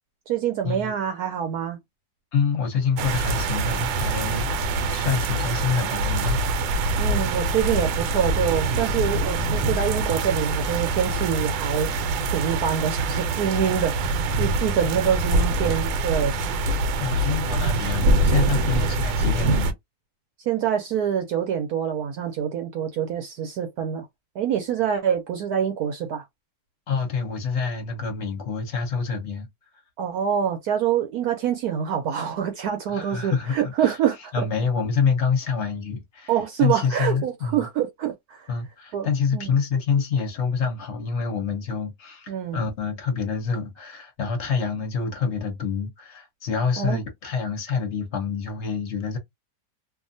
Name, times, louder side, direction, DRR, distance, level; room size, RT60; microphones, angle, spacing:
voice 1, 0.3-1.8 7.0-11.9 12.3-13.9 14.4-16.3 20.5-24.1 24.4-26.2 30.0-34.4 36.3-38.5 38.9-39.6 42.3-42.6 46.8-47.0, right 9 dB, 70° right, 1.0 m, -25 dB
voice 2, 2.3-6.4 15.0-15.1 17.0-19.7 26.9-29.5 32.9-33.9 34.3-36.3 36.6-37.7 38.5-49.2, left 5 dB, 55° left, 0.8 m, -27 dB
sound 1, 3.0-19.7, right 2 dB, 85° right, 1.3 m, -24 dB
2.7 x 2.4 x 2.6 m
omnidirectional pair, 1.9 m